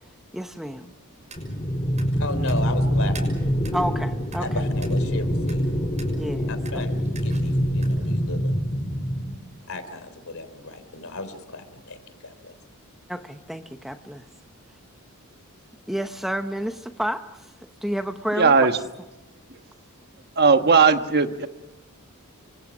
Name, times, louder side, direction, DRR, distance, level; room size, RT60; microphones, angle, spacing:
voice 1, 0.3-0.9 3.7-4.4 6.2-6.8 13.1-14.2 15.9-17.2 17.8-18.7, equal, ahead, 7 dB, 0.9 m, -30 dB
sound 1, 1.2-8.2, right 3 dB, 30° right, 6.4 m, -47 dB
sound 2, 1.4-9.4, equal, 25° left, 2.2 m, -25 dB
voice 2, 2.2-3.4 4.4-5.7 6.5-8.5 9.7-12.5, left 2 dB, 65° left, 10 dB, 3.7 m, -35 dB
voice 3, 18.4-18.7 20.4-21.5, right 5 dB, 45° right, 8 dB, 1.3 m, -17 dB
28.0 x 24.5 x 6.2 m, 1.1 s
head